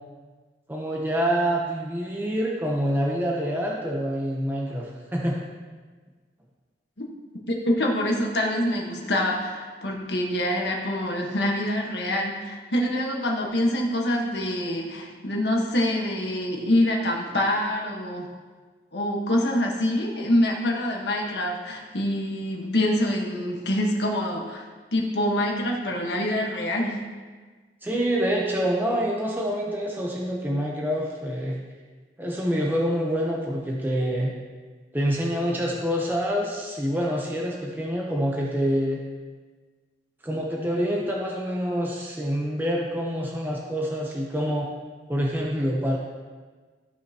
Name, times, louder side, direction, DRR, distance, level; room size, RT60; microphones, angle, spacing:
voice 1, 0.7-5.3 27.8-31.6 32.2-34.3 34.9-39.0 40.2-44.7 45.1-46.0, equal, 10° right, -2 dB, 0.8 m, -26 dB
voice 2, 7.5-18.3 18.9-24.6 24.9-27.0, left 1 dB, 75° left, 0 dB, 1.4 m, -25 dB
14.5 x 5.6 x 2.9 m, 1.4 s
head